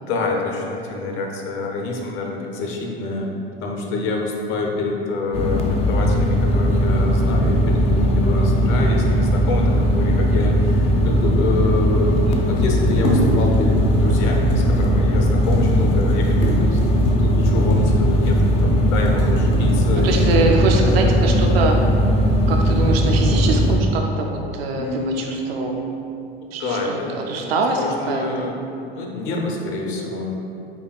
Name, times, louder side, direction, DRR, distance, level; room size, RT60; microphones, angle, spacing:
voice 1, 0.1-16.8 17.1-20.4 21.0-21.1 24.8-25.9 26.6-27.2 27.6-30.3, left 2 dB, 40° left, 0 dB, 0.8 m, -27 dB
sound 1, 5.3-23.8, equal, 20° left, 0.4 m, -18 dB
sound 2, 10.9-11.0 11.2-11.3 12.4-20.7 21.4-21.5 22.0-22.6 23.0-23.5, left 1 dB, 60° left, 1.1 m, -26 dB
voice 2, 20.0-21.7 22.5-25.8 26.5-28.5, right 3 dB, 70° right, 2 dB, 0.5 m, -24 dB
8.3 x 2.8 x 2.2 m, 2.6 s
figure-of-eight pair, 80°, 31 cm